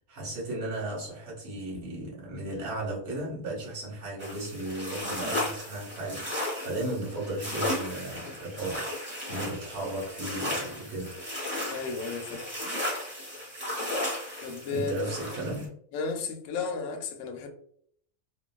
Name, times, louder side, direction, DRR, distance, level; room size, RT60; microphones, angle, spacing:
voice 1, 0.1-11.2 14.7-15.7, right 1 dB, 70° right, 1.5 m, -35 dB
sound 1, 4.2-15.6, left 1 dB, 10° right, 0.9 m, -35 dB
voice 2, 11.7-12.5 14.4-15.0 15.9-17.5, left 4 dB, 70° left, 0.9 m, -33 dB
3.1 x 2.2 x 2.3 m
omnidirectional pair, 1.6 m